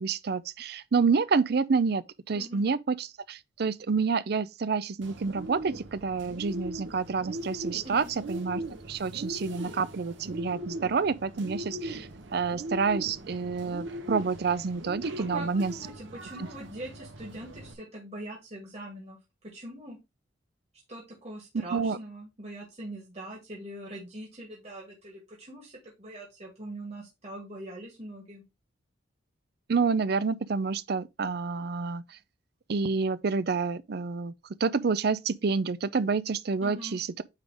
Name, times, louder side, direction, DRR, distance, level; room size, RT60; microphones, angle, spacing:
voice 1, 0.0-15.7 21.7-22.0 29.7-32.2 32.7-34.3 34.6-37.2, right 5 dB, 55° right, 0.5 m, -28 dB
voice 2, 2.3-2.7 7.8-8.1 15.2-19.2 19.5-20.0 20.9-28.4 36.6-37.0, right 1 dB, 35° right, 2.3 m, -42 dB
Bird, 5.0-17.7, right 1 dB, 85° right, 1.1 m, -40 dB
8.9 x 3.8 x 3.4 m
head